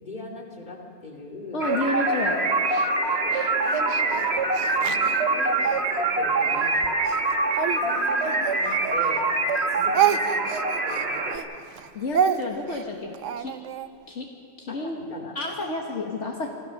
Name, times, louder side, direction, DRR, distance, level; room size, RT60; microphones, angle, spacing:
voice 1, 0.0-1.6 3.2-4.5 4.8-6.9 7.8-9.3 9.7-10.4 10.8-11.5 14.7-15.4, left 2 dB, 40° left, -1 dB, 2.8 m, -40 dB
voice 2, 1.5-2.4 11.9-13.1 13.4-13.5 14.1-14.3 14.6-15.0 15.4-16.5, left 2 dB, 65° left, 0 dB, 1.8 m, -30 dB
sound 1, 1.6-11.4, right 3 dB, 60° right, 1.7 m, -24 dB
Speech, 2.7-5.8 6.4-9.2 9.5-13.9, right 9 dB, 80° right, 1.0 m, -29 dB
26.5 x 15.0 x 6.6 m, 2.4 s
omnidirectional pair, 1.3 m